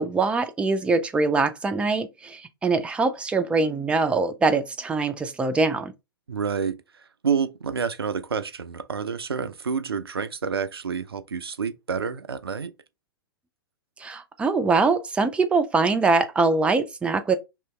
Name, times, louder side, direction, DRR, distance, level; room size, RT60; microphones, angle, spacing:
voice 1, 0.0-5.9 14.0-17.4, right 3 dB, 10° right, 0.4 m, -23 dB
voice 2, 6.3-12.7, right 6 dB, 80° right, 0.4 m, -29 dB
3.0 x 2.7 x 3.1 m
figure-of-eight pair, 100°, 13 cm